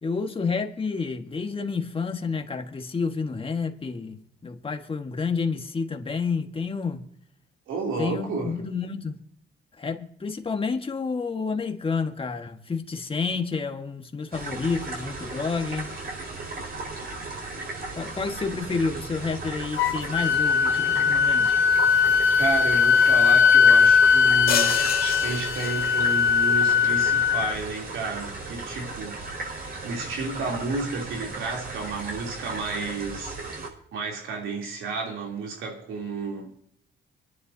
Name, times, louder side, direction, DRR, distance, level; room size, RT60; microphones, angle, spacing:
voice 1, 0.0-7.0 8.0-9.2 9.8-15.9 17.9-21.6, left 4 dB, 25° left, 1.6 m, -29 dB
voice 2, 7.7-8.5 22.4-29.2 29.8-33.4 33.9-36.6, right 4 dB, 80° right, 3.1 m, -32 dB
sound 1, 14.3-33.7, right 3 dB, 50° right, 4.6 m, -36 dB
Wind instrument woodwind instrument, 19.8-27.5, left 6 dB, 85° left, 0.7 m, -20 dB
sound 2, 24.5-26.3, left 7 dB, 50° left, 1.4 m, -29 dB
25.0 x 11.0 x 2.7 m
cardioid pair, 90°, 20 cm